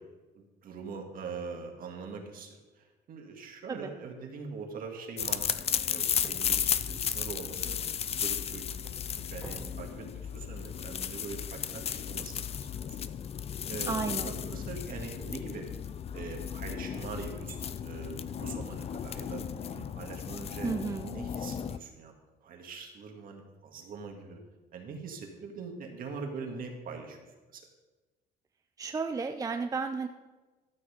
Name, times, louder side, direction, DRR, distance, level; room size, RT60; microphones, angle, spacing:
voice 1, 0.4-8.6 9.1-12.7 13.7-15.7 16.1-22.1 22.4-24.4 24.7-27.2 27.5-27.6, right 4 dB, 55° right, 2 dB, 1.9 m, -43 dB
sound 1, 5.2-21.8, left 8 dB, 35° left, 0.4 m, -34 dB
sound 2, 6.2-7.9 8.4-10.6, right 1 dB, 10° left, 2.4 m, -48 dB
voice 2, 13.9-14.4 20.6-21.1 28.8-30.1, right 5 dB, 20° right, 7 dB, 0.5 m, -33 dB
12.5 x 6.1 x 5.1 m, 1.2 s
cardioid pair, 110°, 17 cm